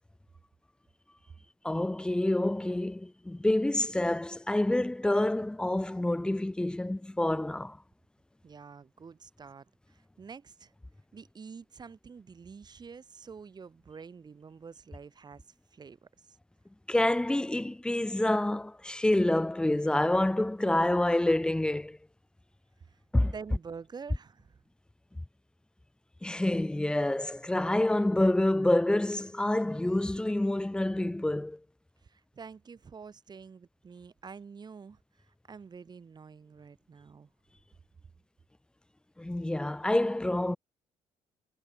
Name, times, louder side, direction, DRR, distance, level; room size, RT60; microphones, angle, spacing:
voice 1, 1.6-7.8 16.9-22.0 23.1-23.3 26.2-31.6 39.2-40.6, left 1 dB, 5° left, 0.9 m, -27 dB
voice 2, 8.4-10.7 11.1-15.4 15.7-16.4 22.9-24.6 32.0-37.3, right 5 dB, 35° right, 7.2 m, -48 dB
cardioid pair, 95°, 12 cm